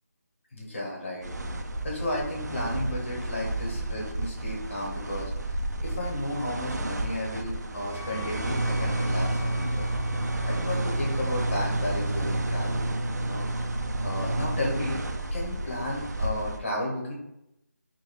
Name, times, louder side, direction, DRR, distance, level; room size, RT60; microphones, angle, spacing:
voice 1, 0.5-1.3 1.8-9.8 10.5-12.9 13.1-13.7 14.0-15.0 15.3-17.1, left 1 dB, 45° left, -3 dB, 1.2 m, -33 dB
sound 1, 1.2-16.6, right 1 dB, 80° right, 0.5 m, -30 dB
Wind instrument woodwind instrument, 7.9-11.5, left 6 dB, 5° left, 0.6 m, -46 dB
3.8 x 2.3 x 3.1 m, 0.85 s
figure-of-eight pair, 170°, 9 cm